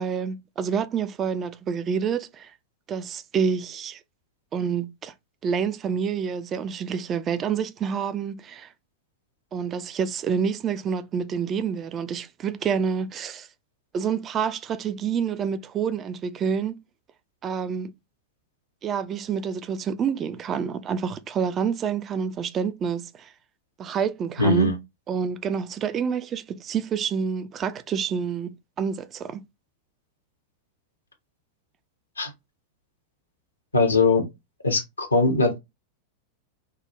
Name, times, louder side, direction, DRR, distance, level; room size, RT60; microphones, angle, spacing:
voice 1, 0.0-2.5 2.9-4.0 4.5-5.1 5.4-8.7 9.5-13.5 13.9-16.7 17.4-17.9 18.8-23.3 23.8-24.7 25.1-29.4, right 7 dB, 25° right, 0.4 m, -28 dB
voice 2, 24.4-24.8 32.2-32.3 33.7-34.2 34.6-35.6, left 3 dB, 80° left, 0.8 m, -20 dB
3.5 x 2.2 x 2.9 m
figure-of-eight pair, 90°, 0 cm